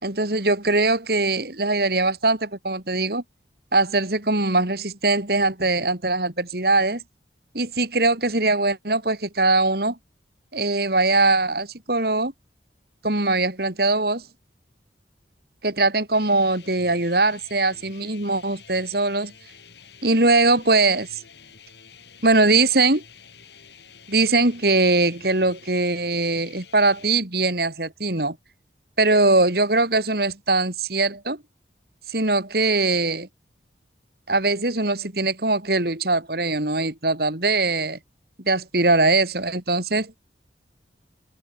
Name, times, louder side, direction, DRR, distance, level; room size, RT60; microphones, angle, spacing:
voice 1, 0.0-3.2 3.7-7.0 7.5-10.0 10.5-12.3 13.0-14.2 15.6-19.3 20.0-21.1 22.2-23.0 24.1-28.4 29.0-31.4 32.1-33.3 34.3-38.0 38.4-40.1, right 2 dB, 55° right, 3.2 m, -21 dB
sound 1, 16.1-27.1, left 6 dB, 65° left, 7.5 m, -49 dB
open air
head